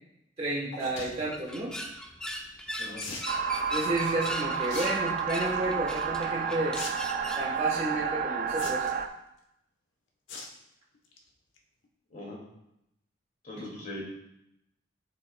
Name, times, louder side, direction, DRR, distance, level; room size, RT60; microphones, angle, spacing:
voice 1, 0.4-1.8 3.7-6.8 7.3-8.9 13.6-13.7, right 2 dB, 30° right, -6 dB, 1.2 m, -31 dB
sound 1, 0.7-1.1 3.0-3.3 4.7-4.9 5.3-5.6 6.7-6.9 7.2-7.3 8.5-9.0 10.3-10.5 10.9-11.2 11.6-11.7 11.8-11.9, left 3 dB, 85° left, 1.1 m, -40 dB
sound 2, 0.8-7.5, equal, 5° left, 0.6 m, -39 dB
sound 3, 3.3-9.1, right 6 dB, 45° right, 0.5 m, -31 dB
voice 2, 13.4-14.0, left 1 dB, 45° left, -3 dB, 2.3 m, -40 dB
9.0 x 7.3 x 2.3 m, 0.83 s
head